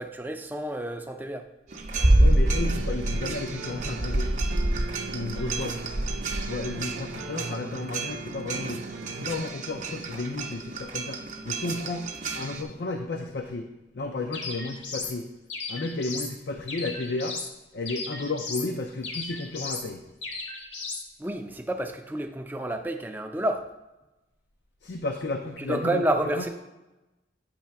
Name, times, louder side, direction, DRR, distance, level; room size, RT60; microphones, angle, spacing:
voice 1, 0.0-1.5 21.2-23.6 25.6-26.5, right 1 dB, 10° right, 6 dB, 0.4 m, -29 dB
sound 1, 1.7-12.6, right 1 dB, 40° right, 0.7 m, -28 dB
sound 2, 1.9-9.4, right 3 dB, 85° right, 0.5 m, -39 dB
voice 2, 2.2-4.3 5.1-5.8 6.4-8.8 9.1-11.2 11.4-13.7 13.9-15.3 15.7-17.4 17.7-20.0 24.8-26.5, left 2 dB, 70° left, 4 dB, 0.5 m, -33 dB
sound 3, 14.3-15.2 15.5-16.3 16.7-17.5 17.9-18.7 19.0-19.9 20.2-21.0, left 3 dB, 90° left, 1.3 m, -35 dB
8.5 x 3.2 x 5.7 m, 0.99 s
head